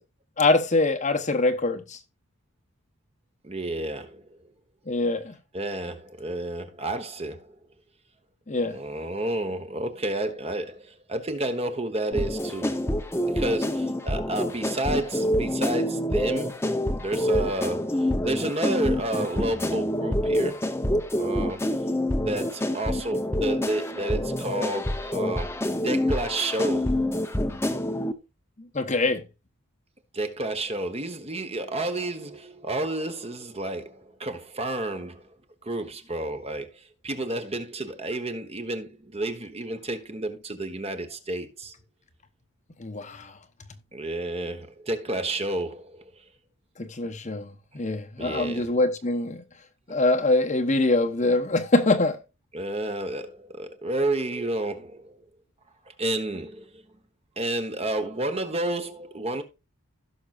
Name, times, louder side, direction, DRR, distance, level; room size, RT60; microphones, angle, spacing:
voice 1, 0.4-2.0 4.9-5.4 8.5-8.7 28.6-29.2 42.8-43.3 46.8-49.4 49.9-52.2, left 2 dB, 35° left, 1.0 m, -24 dB
voice 2, 3.4-4.4 5.5-7.6 8.6-12.9 13.3-16.5 17.0-20.6 21.2-21.6 22.2-25.5 25.8-26.9 30.1-35.3 35.6-41.7 43.9-46.0 48.2-48.7 52.5-55.2 56.0-56.8 57.4-59.4, right 2 dB, 30° right, 1.2 m, -30 dB
sound 1, 12.1-28.1, left 1 dB, 10° left, 0.8 m, -27 dB
16.5 x 6.2 x 2.5 m
head